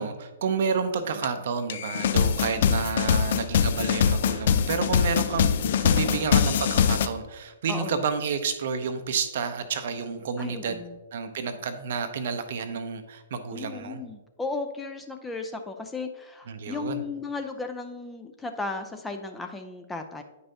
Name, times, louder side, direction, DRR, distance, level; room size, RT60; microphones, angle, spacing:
voice 1, 0.0-10.8 11.1-14.0 16.5-17.0, right 5 dB, 55° right, 9 dB, 0.7 m, -30 dB
sound 1, 1.2-1.3 1.7-7.1, left 7 dB, 55° left, 0.4 m, -23 dB
voice 2, 2.5-2.8 5.9-6.3 7.7-8.0 10.4-11.0 13.5-20.2, left 3 dB, 10° left, 5 dB, 0.6 m, -35 dB
9.6 x 5.4 x 2.8 m, 1.1 s
figure-of-eight pair, 115°, 0 cm